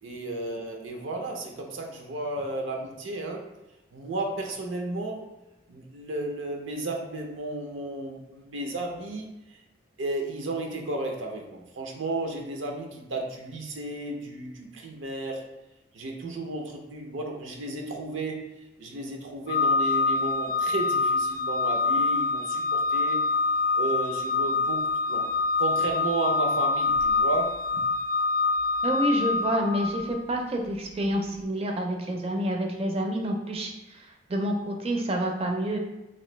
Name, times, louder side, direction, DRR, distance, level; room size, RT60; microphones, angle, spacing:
voice 1, 0.0-3.5 3.9-5.3 5.7-9.6 10.0-15.4 15.9-18.4 18.8-23.2 23.7-25.3 25.6-27.6, right 2 dB, 85° right, 1 dB, 0.6 m, -33 dB
Organ, 19.5-30.2, left 3 dB, 50° left, 0.4 m, -25 dB
voice 2, 28.8-35.8, equal, 30° right, 2 dB, 0.4 m, -28 dB
3.1 x 2.5 x 3.1 m, 1.0 s
head